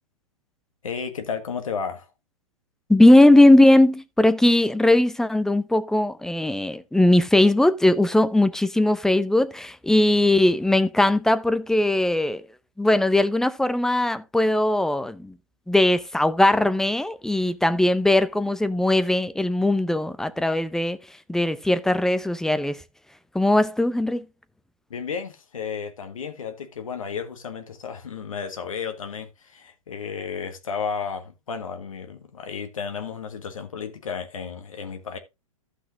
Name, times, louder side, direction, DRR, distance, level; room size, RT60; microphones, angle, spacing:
voice 1, 0.8-2.1 24.9-35.2, left 6 dB, 75° left, 1.5 m, -33 dB
voice 2, 2.9-12.4 12.8-15.3 15.7-21.0 21.3-22.8 23.3-24.2, left 1 dB, 5° left, 0.6 m, -19 dB
15.0 x 5.9 x 2.6 m
figure-of-eight pair, 115°, 18 cm